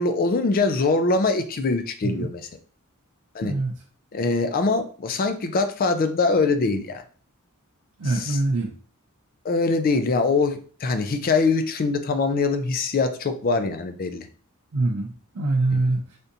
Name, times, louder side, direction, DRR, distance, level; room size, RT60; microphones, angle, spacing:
voice 1, 0.0-2.5 3.3-3.5 4.1-7.0 8.0-8.4 9.4-14.3, left 3 dB, 40° left, 8 dB, 0.4 m, -23 dB
voice 2, 3.4-3.7 8.0-8.7 14.7-16.2, right 2 dB, 80° right, -1 dB, 0.5 m, -24 dB
3.5 x 2.6 x 2.7 m, 0.41 s
head